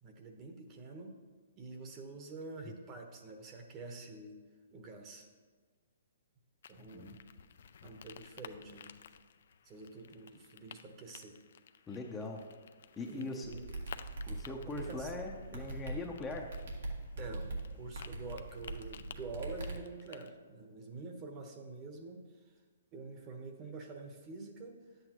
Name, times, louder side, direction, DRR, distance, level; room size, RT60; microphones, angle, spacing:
voice 1, 0.0-1.1 1.6-4.4 4.7-5.3 6.7-7.1 7.8-8.9 9.6-11.3 13.1-13.7 14.7-15.1 17.2-22.2 22.9-24.8, right 3 dB, 25° right, 4 dB, 1.0 m, -47 dB
sound 1, 6.6-20.3, left 7 dB, 65° left, 0.4 m, -55 dB
voice 2, 6.8-7.2 11.9-12.4 13.0-13.5 14.3-16.5, left 3 dB, 10° left, 1 dB, 0.6 m, -41 dB
sound 2, 13.4-19.7, right 2 dB, 80° right, 1.8 m, -42 dB
10.5 x 8.0 x 3.0 m, 1.5 s
hypercardioid pair, 150°, 0 cm